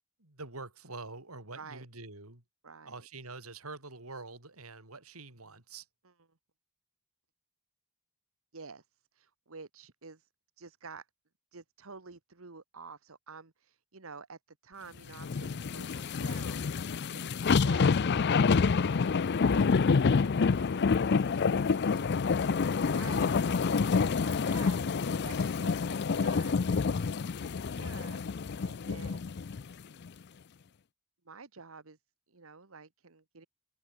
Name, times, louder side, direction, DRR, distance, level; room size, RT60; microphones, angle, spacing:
voice 1, 0.2-2.4 2.8-5.9 23.0-23.4 23.9-24.3, right 3 dB, 85° right, 4.4 m, -46 dB
voice 2, 1.5-1.9 2.6-3.1 6.0-6.1 8.5-8.8 9.1-10.3 10.6-11.1 11.5-28.2 28.6-29.3 31.2-32.0 32.3-33.5, right 4 dB, 70° right, 1.4 m, -50 dB
sound 1, 15.2-29.6 30.1-30.2, left 5 dB, 50° left, 0.5 m, -28 dB
head